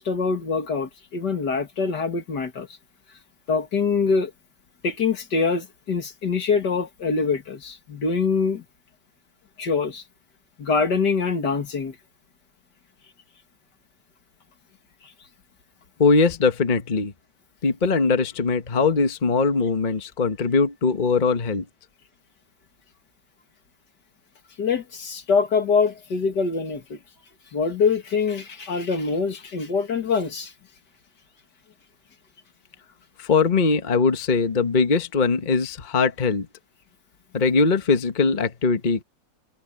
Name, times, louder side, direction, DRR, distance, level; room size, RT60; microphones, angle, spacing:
voice 1, 0.0-2.7 3.5-4.3 4.8-8.6 9.6-10.0 10.6-11.9 24.6-27.0 27.5-30.5, left 5 dB, 65° left, 2.6 m, -24 dB
voice 2, 16.0-17.1 17.6-21.6 33.2-36.5 37.3-39.0, left 4 dB, 30° left, 1.2 m, -21 dB
omnidirectional pair, 2.0 m